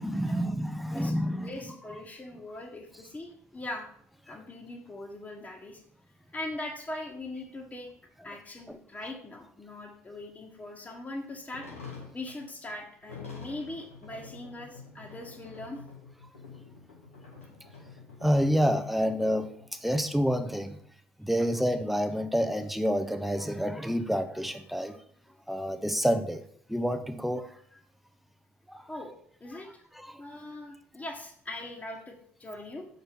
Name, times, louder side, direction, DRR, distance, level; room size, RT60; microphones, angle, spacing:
voice 1, 0.0-1.6 8.7-8.8 18.2-20.8 21.2-25.0 25.5-26.4 26.7-27.5 28.7-28.8 29.9-30.2, equal, ahead, 8 dB, 0.8 m, -28 dB
voice 2, 0.9-3.9 4.3-5.8 6.3-7.9 8.2-11.7 12.1-15.8 28.9-29.1 29.4-29.8 30.2-32.9, left 2 dB, 20° left, -2 dB, 1.5 m, -41 dB
sound 1, 11.5-19.9 20.2-20.3 20.8-20.9 21.2-22.9, left 4 dB, 90° left, 1.4 m, -47 dB
6.6 x 5.2 x 4.5 m, 0.63 s
figure-of-eight pair, 55°, 7 cm